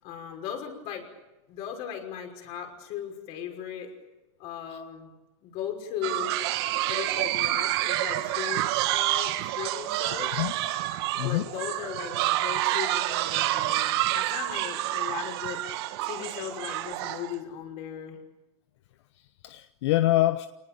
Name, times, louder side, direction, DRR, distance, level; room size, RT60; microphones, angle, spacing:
voice 1, 0.0-1.1 1.5-3.9 4.4-5.1 5.4-6.4 6.9-10.4 11.2-15.6 16.0-18.2, left 9 dB, 45° left, 3 dB, 5.6 m, -37 dB
sound 1, 6.0-17.3, right 15 dB, 55° right, 1.6 m, -28 dB
voice 2, 11.2-11.5 19.2-20.5, left 16 dB, 70° left, 11 dB, 1.0 m, -25 dB
27.0 x 19.5 x 8.8 m, 1.1 s
supercardioid pair, 160°, 15 cm